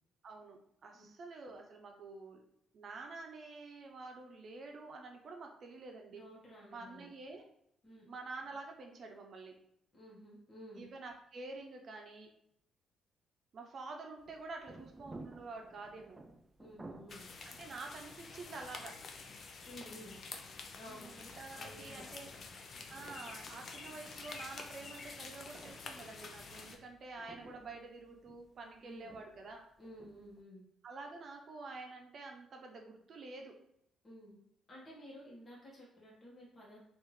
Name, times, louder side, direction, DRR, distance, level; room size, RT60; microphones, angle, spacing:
voice 1, 0.2-2.4 2.7-6.2 6.7-7.4 8.1-9.6 10.7-12.3 13.5-16.2 17.4-19.0 20.9-22.3 22.9-29.7 30.8-33.6, right 3 dB, 55° right, 3 dB, 0.6 m, -48 dB
voice 2, 6.1-7.1 7.8-8.0 9.9-10.8 16.6-17.2 19.6-20.2 20.7-21.1 21.5-22.0 28.8-29.1 29.8-30.6 34.0-34.4 34.7-36.8, equal, 30° left, -6 dB, 1.3 m, -53 dB
sound 1, 14.2-30.4, right 2 dB, 20° right, 0.3 m, -57 dB
sound 2, 17.1-26.8, left 4 dB, 55° left, 0.5 m, -49 dB
3.5 x 2.5 x 3.1 m, 0.74 s
cardioid pair, 90°, 0 cm